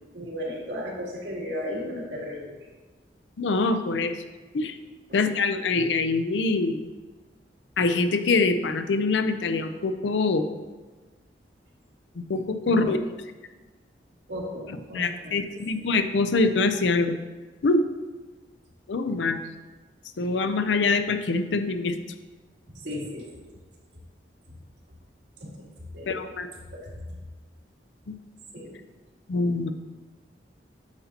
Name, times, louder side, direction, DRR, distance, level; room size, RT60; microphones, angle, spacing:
voice 1, 0.0-2.6 5.1-5.2 12.6-12.9 14.3-15.4 22.8-23.5 25.4-25.7 25.9-27.2 28.5-28.7, left 1 dB, 80° right, -4 dB, 1.9 m, -35 dB
voice 2, 3.4-4.1 4.5-4.7 5.1-6.8 7.8-10.4 12.3-13.0 14.9-17.2 17.6-17.8 18.9-19.4 20.2-21.9 26.1-26.5 29.3-29.7, left 3 dB, 85° left, 9 dB, 0.5 m, -24 dB
8.8 x 5.7 x 2.9 m, 1.3 s
head